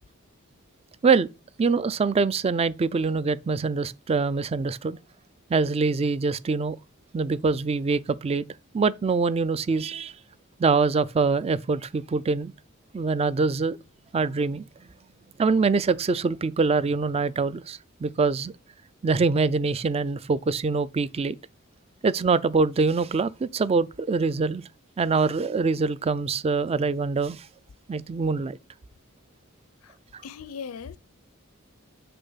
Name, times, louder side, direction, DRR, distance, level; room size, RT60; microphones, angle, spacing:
voice 1, 1.6-5.0 5.5-6.8 7.1-8.4 8.7-10.1 10.6-12.5 12.9-13.8 14.1-14.6 15.4-18.5 19.0-21.4 22.0-24.6 25.0-27.5 27.9-28.6, right 4 dB, 30° right, 0.3 m, -24 dB
voice 2, 30.2-31.0, left 6 dB, 90° left, 0.5 m, -38 dB
6.8 x 5.1 x 5.6 m
head